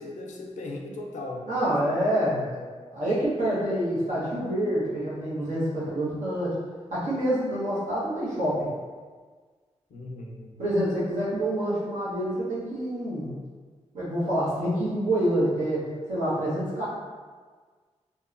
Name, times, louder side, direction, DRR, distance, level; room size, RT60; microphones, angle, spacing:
voice 1, 0.0-1.5 9.9-10.6, left 2 dB, 85° left, 0 dB, 0.4 m, -37 dB
voice 2, 1.5-2.6 2.9-6.6 6.9-8.7 10.6-13.3 13.9-15.8 16.1-16.9, right 1 dB, 90° right, -9 dB, 1.0 m, -27 dB
2.7 x 2.2 x 2.4 m, 1.5 s
wide cardioid pair, 90°, 12 cm